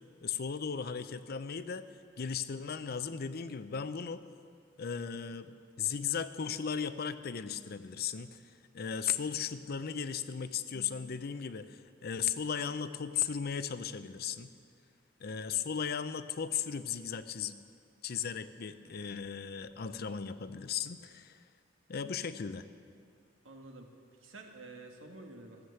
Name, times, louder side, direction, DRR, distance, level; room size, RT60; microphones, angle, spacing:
voice 1, 0.2-1.8 2.2-4.2 4.8-14.5 15.2-17.6 18.0-21.4 21.9-22.7, left 7 dB, 55° left, 12 dB, 0.5 m, -36 dB
voice 2, 23.4-25.7, right 2 dB, 90° right, 3 dB, 1.5 m, -50 dB
14.5 x 7.3 x 7.9 m, 2.3 s
head